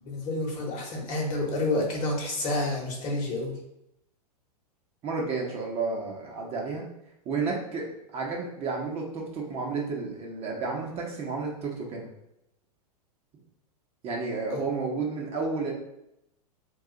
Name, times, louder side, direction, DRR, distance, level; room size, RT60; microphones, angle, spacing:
voice 1, 0.0-3.5 14.5-14.6, left 2 dB, 40° left, 0 dB, 1.0 m, -29 dB
voice 2, 5.0-6.8 7.2-12.1 14.0-15.7, right 4 dB, 30° right, -2 dB, 0.8 m, -31 dB
2.6 x 2.4 x 3.8 m, 0.81 s
hypercardioid pair, 105°, 20 cm